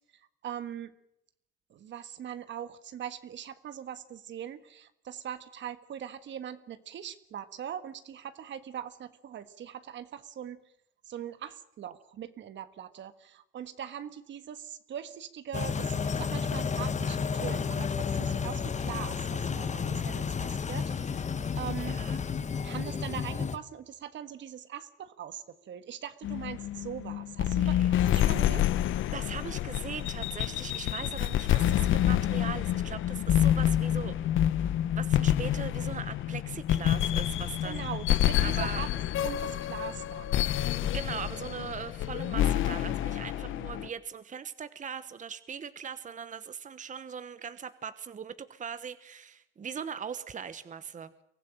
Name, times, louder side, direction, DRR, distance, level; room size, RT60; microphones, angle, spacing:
voice 1, 0.4-0.9 1.7-10.6 11.1-21.3 21.5-22.0 22.6-28.7 37.6-38.9 39.2-40.4 43.4-43.5, right 9 dB, 70° right, 12 dB, 1.6 m, -41 dB
sound 1, 15.5-23.6, left 6 dB, 35° left, 1.2 m, -31 dB
voice 2, 21.8-22.2 27.6-27.9 29.1-34.1 34.9-37.9 38.4-38.8 40.8-51.1, right 7 dB, 40° right, 13 dB, 1.1 m, -40 dB
sound 2, 26.2-43.9, left 11 dB, 80° left, 0.9 m, -28 dB
23.5 x 15.0 x 8.9 m, 0.80 s
cardioid pair, 90°, 20 cm